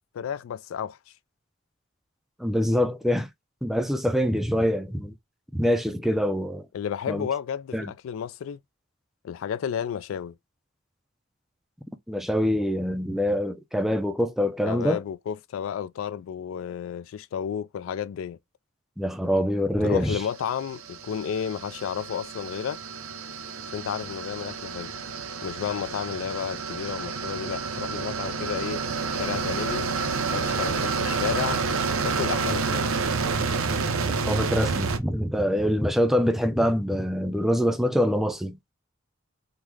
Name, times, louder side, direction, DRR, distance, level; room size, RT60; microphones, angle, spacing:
voice 1, 0.1-1.0 6.7-8.6 9.2-10.3 14.7-18.4 19.8-22.8 23.7-24.9 25.4-28.8 29.1-29.9 30.3-31.6 32.0-32.9, left 8 dB, 70° left, 0.3 m, -32 dB
voice 2, 2.4-3.3 3.6-5.1 5.5-6.7 7.1-7.3 7.7-7.9 12.1-15.0 19.0-20.2 34.2-38.6, equal, ahead, 0.4 m, -25 dB
sound 1, 20.3-35.0, right 4 dB, 85° right, 0.6 m, -29 dB
3.7 x 2.1 x 3.1 m
head